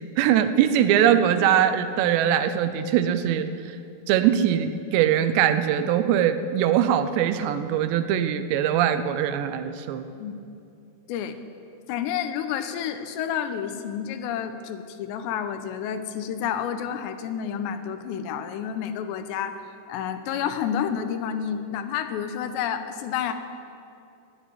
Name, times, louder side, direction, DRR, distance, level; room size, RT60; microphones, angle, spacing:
voice 1, 0.2-3.5 4.1-10.0, right 10 dB, 85° right, 10 dB, 3.0 m, -22 dB
voice 2, 11.1-11.4 11.9-19.6 19.9-23.3, left 8 dB, 90° left, 9 dB, 3.1 m, -30 dB
12.0 x 11.5 x 9.7 m, 2.6 s
omnidirectional pair, 4.9 m